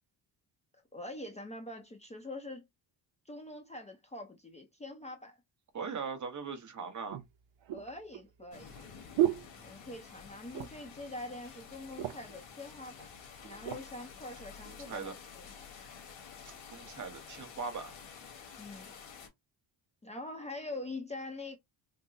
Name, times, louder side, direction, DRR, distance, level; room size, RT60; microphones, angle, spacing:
voice 1, 0.9-2.7 3.3-5.4 7.7-8.8 9.6-13.1 13.4-15.5 18.6-18.9 20.0-21.6, left 2 dB, 15° left, 0.6 m, -44 dB
voice 2, 5.7-7.2 14.7-15.1 16.7-17.9, right 5 dB, 40° right, 0.9 m, -40 dB
sound 1, 6.1-6.2 7.1-10.2 10.5-11.0 11.3-11.4 11.7-12.4 13.1-13.9 14.5-14.7, right 13 dB, 80° right, 0.7 m, -35 dB
sound 2, 8.5-19.3, left 6 dB, 85° left, 1.6 m, -50 dB
3.7 x 2.0 x 3.9 m
cardioid pair, 140°, 45 cm